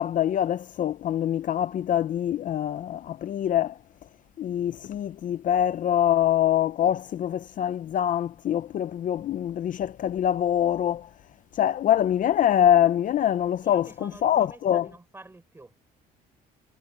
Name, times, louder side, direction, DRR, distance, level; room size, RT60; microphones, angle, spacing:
voice 1, 0.0-3.8 4.4-11.1 11.5-14.9, left 10 dB, 50° left, 0.7 m, -24 dB
voice 2, 13.6-15.8, right 2 dB, 15° right, 4.5 m, -48 dB
cardioid pair, 110°, 17 cm